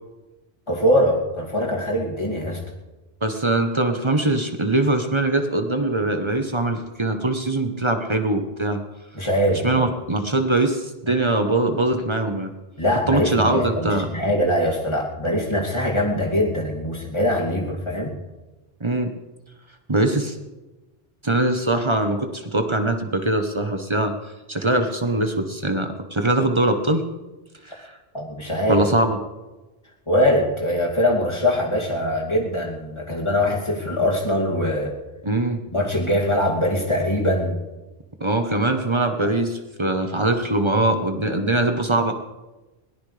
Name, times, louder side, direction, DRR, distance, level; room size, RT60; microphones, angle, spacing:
voice 1, 0.7-2.6 9.1-9.8 12.8-18.1 28.1-28.8 30.1-35.0 35.7-37.6 39.2-39.3, left 1 dB, 30° left, -2 dB, 2.7 m, -22 dB
voice 2, 3.2-8.8 9.6-12.5 13.1-14.1 18.8-19.1 19.9-20.4 21.2-24.1 24.5-27.0 27.6-27.9 28.7-29.2 35.2-35.6 38.2-42.1, right 2 dB, 30° right, 6 dB, 1.1 m, -22 dB
21.5 x 17.5 x 3.4 m, 1.1 s
omnidirectional pair, 1.0 m